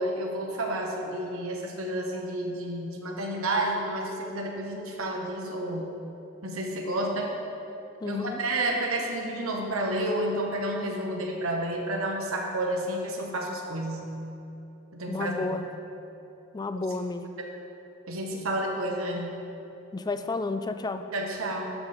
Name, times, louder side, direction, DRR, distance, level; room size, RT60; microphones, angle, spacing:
voice 1, 0.0-5.9 6.4-7.3 8.0-14.1 14.9-15.6 17.4-17.5 18.1-19.3 21.1-21.7, right 1 dB, 80° right, 1 dB, 1.1 m, -30 dB
voice 2, 8.0-8.4 15.1-15.7 16.5-17.3 19.9-21.1, left 3 dB, 20° left, 9 dB, 0.3 m, -31 dB
12.0 x 5.5 x 3.5 m, 3.0 s
head